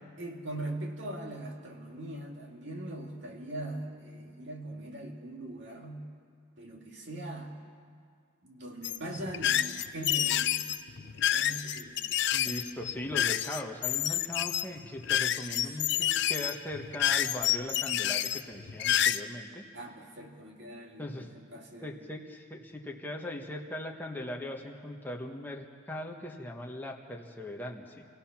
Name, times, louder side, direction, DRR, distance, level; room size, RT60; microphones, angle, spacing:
voice 1, 0.2-6.1 6.6-7.5 8.4-10.6 11.0-12.4 15.4-15.8 19.7-21.9, right 1 dB, 55° right, 1 dB, 2.3 m, -41 dB
sound 1, 8.8-19.2, left 11 dB, 55° left, 0.5 m, -29 dB
voice 2, 12.3-19.7 21.0-21.3 21.8-28.0, left 1 dB, 10° left, 0 dB, 1.3 m, -39 dB
27.5 x 16.5 x 5.9 m, 2.2 s
head